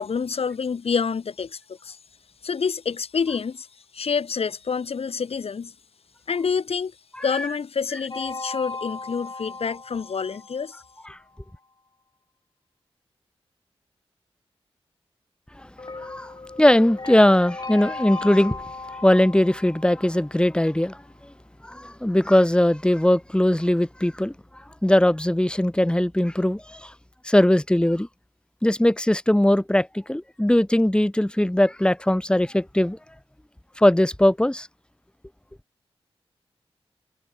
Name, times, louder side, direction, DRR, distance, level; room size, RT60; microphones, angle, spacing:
voice 1, 0.0-2.0 2.4-3.7 3.9-5.7 6.3-6.9 7.2-10.8, left 6 dB, 70° left, 6.3 m, -27 dB
sound 1, 8.1-11.1 15.8-20.8, left 3 dB, 40° left, 7.0 m, -36 dB
voice 2, 16.0-18.6 19.0-21.0 21.6-24.3 24.8-26.9 27.2-28.1 28.6-33.0 33.8-34.7, left 1 dB, 10° left, 2.7 m, -20 dB
cardioid pair, 55°, 10 cm